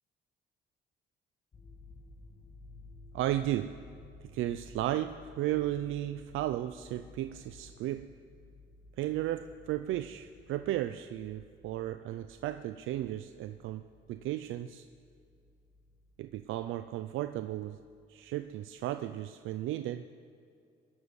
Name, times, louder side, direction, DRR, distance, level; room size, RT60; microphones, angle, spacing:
sound 1, 1.5-18.6 18.9-19.2, left 2 dB, 35° left, 2.5 m, -56 dB
voice 1, 3.1-3.8 4.3-8.1 9.0-13.8 14.1-14.9 16.2-17.8 18.1-20.1, right 13 dB, 85° right, 10 dB, 0.5 m, -34 dB
20.0 x 7.2 x 9.6 m, 2.4 s
cardioid pair, 90°, 20 cm